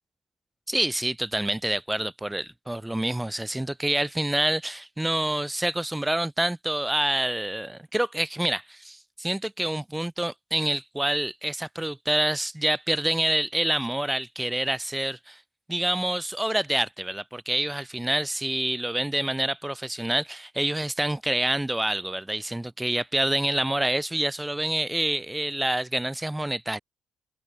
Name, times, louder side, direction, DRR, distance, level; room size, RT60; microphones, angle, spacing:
voice 1, 0.7-15.4 15.7-26.8, right 1 dB, 10° right, 3.5 m, -27 dB
open air
cardioid pair, 90°, 0 cm